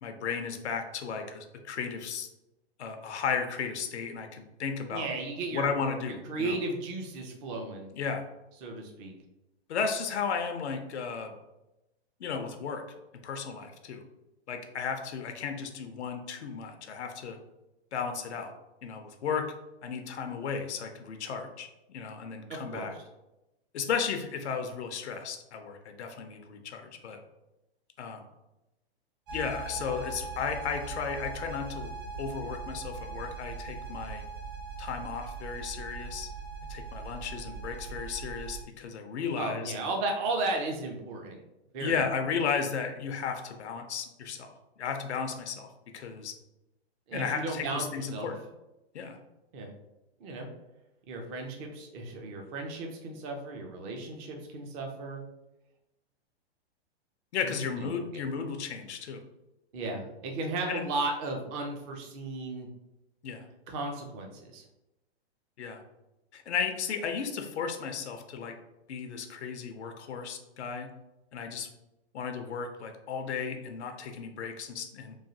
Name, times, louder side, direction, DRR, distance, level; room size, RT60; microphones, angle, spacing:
voice 1, 0.0-2.3 2.8-5.1 5.5-6.6 7.9-8.2 9.7-11.3 12.2-12.8 13.2-14.0 14.5-17.4 17.9-18.5 18.8-19.5 19.8-22.9 23.7-27.2 28.0-28.2 29.3-31.9 32.2-34.2 34.8-36.3 36.7-39.7 41.8-45.7 45.9-46.3 47.1-48.4 48.9-49.2 57.3-59.2 60.7-60.8 63.2-63.5 65.6-65.8 66.3-68.6 68.9-70.9 71.3-71.7 72.1-75.1, left 6 dB, 85° left, 5 dB, 0.5 m, -34 dB
voice 2, 4.9-5.7 6.3-7.9 8.6-9.1 22.5-22.9 39.4-41.4 41.7-42.0 47.1-48.3 49.5-49.7 50.2-50.5 51.1-55.2 57.4-57.9 59.7-62.7 63.7-64.6, right 2 dB, 20° right, 2 dB, 0.3 m, -35 dB
sound 1, 29.3-38.6, right 4 dB, 50° right, 0.9 m, -40 dB
3.1 x 2.2 x 2.6 m, 0.95 s
hypercardioid pair, 125°, 33 cm